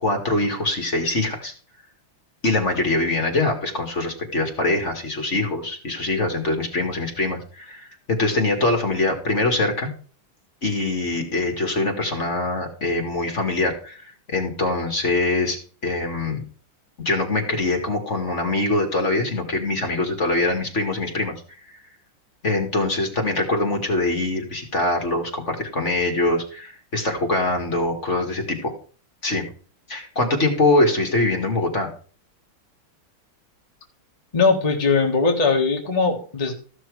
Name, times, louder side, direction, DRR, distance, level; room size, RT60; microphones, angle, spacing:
voice 1, 0.0-1.5 2.4-9.9 10.6-16.4 17.0-21.3 22.4-28.7 29.2-29.4 29.9-31.9, left 2 dB, 35° left, 3 dB, 2.1 m, -23 dB
voice 2, 34.3-36.5, left 4 dB, 20° left, 0 dB, 1.6 m, -20 dB
14.5 x 6.2 x 4.8 m, 0.41 s
omnidirectional pair, 2.3 m